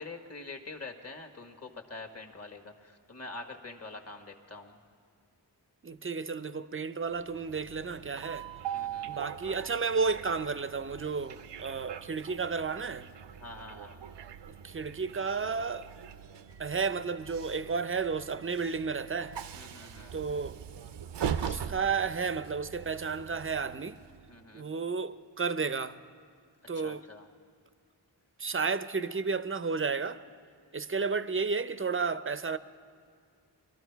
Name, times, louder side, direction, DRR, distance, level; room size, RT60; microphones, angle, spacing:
voice 1, 0.0-4.8 8.7-9.3 13.4-14.0 19.5-20.2 21.3-21.6 24.3-24.7 26.7-27.3, left 3 dB, 35° left, 1.5 m, -45 dB
voice 2, 5.8-8.5 9.0-13.1 14.6-15.9 16.6-19.4 20.1-20.6 21.4-24.0 24.5-26.0 26.7-27.0 28.4-30.2 30.7-32.6, right 5 dB, 30° right, 0.5 m, -32 dB
Train, 7.2-24.4, right 8 dB, 75° right, 0.6 m, -41 dB
22.5 x 12.5 x 4.6 m
wide cardioid pair, 55°, 42 cm